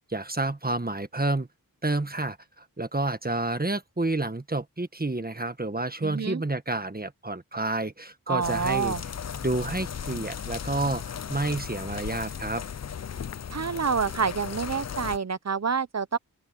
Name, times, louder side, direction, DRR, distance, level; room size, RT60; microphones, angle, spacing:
voice 1, 0.1-1.5 1.8-9.0 9.4-12.6, right 2 dB, 25° right, 1.6 m, -29 dB
voice 2, 6.0-6.4 8.3-9.0 13.5-16.2, right 6 dB, 45° right, 0.8 m, -27 dB
sound 1, 8.4-15.2, left 7 dB, 50° left, 0.5 m, -36 dB
open air
wide cardioid pair, 45°, 36 cm